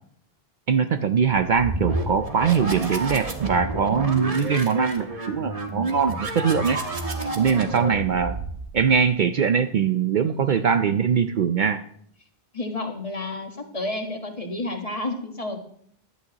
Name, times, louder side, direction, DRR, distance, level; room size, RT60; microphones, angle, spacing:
voice 1, 0.7-6.8 7.4-8.4 8.7-11.8, right 6 dB, 55° right, 8 dB, 0.6 m, -22 dB
sound 1, 1.3-9.0, right 2 dB, 35° right, 1.3 m, -30 dB
voice 2, 12.5-15.6, left 2 dB, 35° left, 3 dB, 1.5 m, -31 dB
15.5 x 11.5 x 2.9 m, 0.64 s
omnidirectional pair, 1.1 m